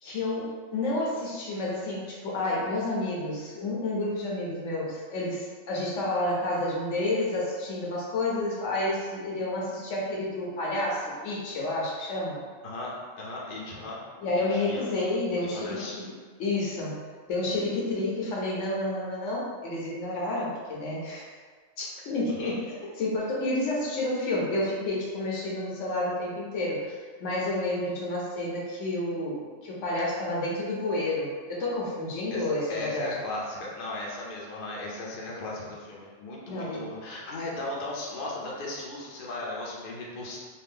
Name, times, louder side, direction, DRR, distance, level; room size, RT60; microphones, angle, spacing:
voice 1, 0.0-12.4 14.2-16.1 16.4-17.0 17.3-21.3 21.8-33.2 36.5-36.9, left 2 dB, 70° left, -4 dB, 1.0 m, -30 dB
voice 2, 12.6-14.0 14.5-14.9 15.5-15.9 22.3-22.6 32.3-40.4, left 2 dB, 50° left, -4 dB, 0.7 m, -37 dB
2.7 x 2.3 x 3.4 m, 1.5 s
omnidirectional pair, 1.4 m